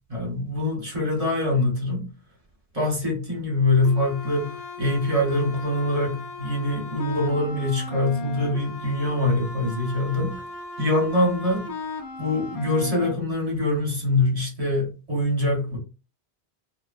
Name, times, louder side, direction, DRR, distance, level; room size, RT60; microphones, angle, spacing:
voice 1, 0.1-2.1 2.7-10.4 10.8-11.7 12.2-15.8, left 2 dB, 35° right, -2 dB, 1.1 m, -24 dB
sound 1, 3.8-13.1, left 2 dB, 50° left, 0.7 m, -37 dB
2.8 x 2.3 x 2.5 m, 0.32 s
omnidirectional pair, 1.1 m